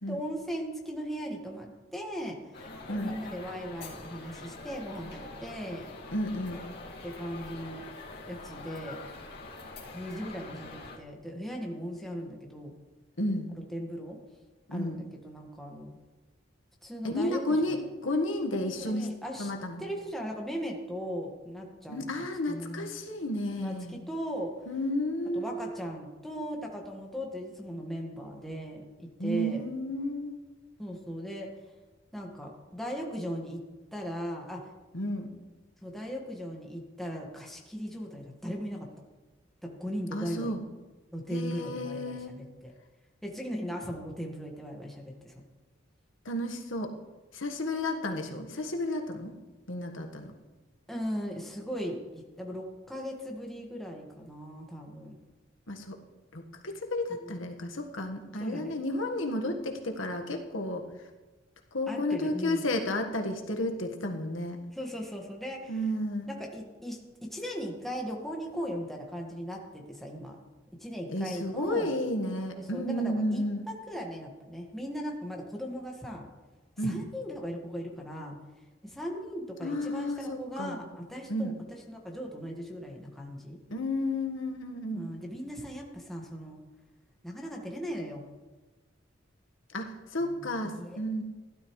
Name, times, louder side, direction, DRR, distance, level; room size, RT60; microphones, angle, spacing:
voice 1, 0.1-5.9 7.0-7.8 8.2-9.0 9.9-12.7 13.5-14.2 14.7-16.0 16.8-17.8 18.8-19.5 19.8-22.1 22.5-22.9 23.5-23.7 24.1-24.6 25.3-29.6 30.8-31.5 32.1-33.6 33.9-34.7 35.8-38.9 39.6-40.6 41.1-42.7 43.2-45.4 50.9-55.2 57.2-57.5 58.4-58.8 61.9-62.7 64.7-65.8 66.3-70.4 70.8-72.0 72.6-76.3 76.8-78.4 78.8-83.6 84.9-86.6 87.2-88.3 90.2-91.0, equal, ahead, -1 dB, 1.7 m, -38 dB
sound 1, 2.5-11.0, left 3 dB, 60° left, 2.2 m, -44 dB
voice 2, 6.1-6.6 13.2-13.5 14.7-15.0 17.0-17.8 18.0-19.1 19.4-19.8 21.9-23.9 24.7-25.7 29.2-30.4 34.9-35.3 40.1-40.6 41.3-42.3 46.2-46.9 47.3-49.4 49.7-50.3 55.7-56.0 56.3-60.8 61.7-64.6 65.7-66.3 71.1-73.7 76.8-77.0 79.6-80.8 81.3-81.5 83.7-85.0 89.7-91.2, left 1 dB, 75° left, 4 dB, 1.5 m, -32 dB
15.5 x 12.0 x 3.2 m, 1.2 s
head